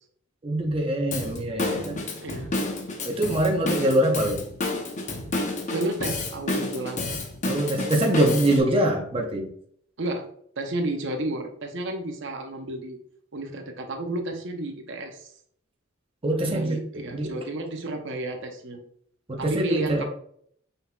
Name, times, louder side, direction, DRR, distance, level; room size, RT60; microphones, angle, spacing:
voice 1, 0.4-2.1 3.0-4.4 7.4-9.5 16.2-16.8 17.1-17.4 19.3-20.0, right 1 dB, 25° right, 1 dB, 0.6 m, -24 dB
Drum kit / Drum, 1.1-8.6, left 2 dB, 35° left, 0.7 m, -30 dB
voice 2, 2.2-2.6 5.7-7.0 10.0-10.3 10.6-13.0 13.3-15.3 16.5-18.8 19.4-20.0, right 2 dB, 65° right, 4 dB, 0.7 m, -32 dB
5.8 x 4.0 x 2.2 m, 0.65 s
head